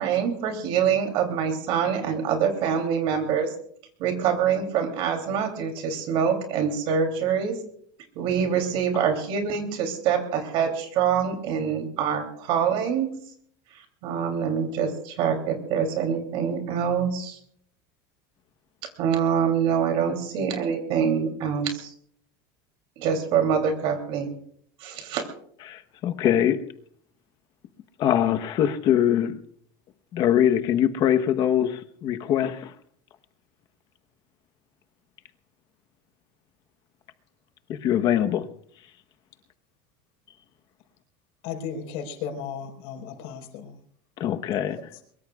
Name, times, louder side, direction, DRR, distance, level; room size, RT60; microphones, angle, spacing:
voice 1, 0.0-3.5 4.0-7.6 8.2-13.1 14.0-17.4 19.0-21.9 23.0-24.4 24.8-25.2, right 7 dB, 55° right, 3.2 m, -25 dB
voice 2, 25.7-26.7 28.0-29.4 30.1-32.7 37.7-38.5 44.2-44.8, left 10 dB, 40° left, 1.1 m, -23 dB
voice 3, 41.4-43.8 44.7-45.0, left 7 dB, 60° left, 4.7 m, -35 dB
22.5 x 22.5 x 2.4 m
supercardioid pair, 155°, 11 cm